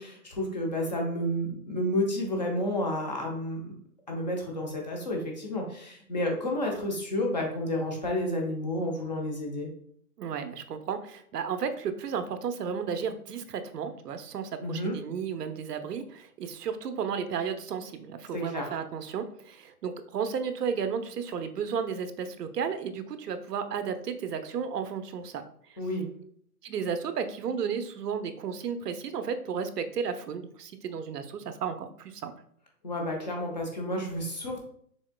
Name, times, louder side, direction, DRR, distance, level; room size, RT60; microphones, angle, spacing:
voice 1, 0.0-3.7 4.1-9.7 14.6-15.0 18.3-18.7 25.8-26.1 32.8-34.6, left 1 dB, 30° left, 0 dB, 0.7 m, -31 dB
voice 2, 10.2-25.4 26.6-32.3, right 6 dB, 90° right, 9 dB, 0.7 m, -33 dB
6.2 x 3.6 x 2.2 m, 0.64 s
hypercardioid pair, 175°, 46 cm